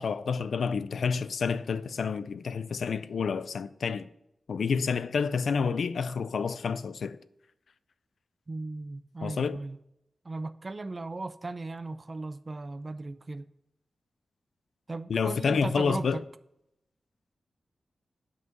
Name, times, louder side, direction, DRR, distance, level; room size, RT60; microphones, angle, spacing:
voice 1, 0.0-4.1 4.5-7.2 9.2-9.6 15.1-16.2, left 5 dB, 75° left, 0.4 m, -29 dB
voice 2, 8.5-9.8 10.2-13.5 14.9-16.2, right 3 dB, 30° right, 0.4 m, -37 dB
9.5 x 5.6 x 6.0 m
wide cardioid pair, 175°, 0 cm